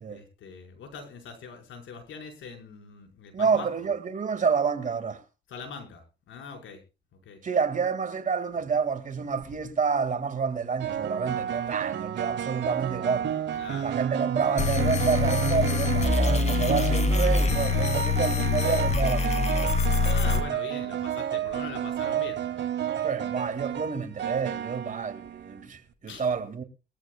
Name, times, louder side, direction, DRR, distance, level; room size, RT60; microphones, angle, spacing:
voice 1, 0.1-3.9 5.5-6.8 7.3-7.4 13.4-14.0 20.0-22.6 26.1-26.4, left 5 dB, 75° left, 5.1 m, -42 dB
voice 2, 3.3-5.2 7.4-13.3 13.8-19.4 23.0-26.6, right 5 dB, 40° right, 2.1 m, -28 dB
sound 1, 9.2-9.5 10.8-25.6, right 10 dB, 65° right, 1.2 m, -31 dB
sound 2, 14.6-20.4, left 4 dB, 35° left, 2.0 m, -25 dB
21.5 x 14.5 x 2.3 m
cardioid pair, 90°, 20 cm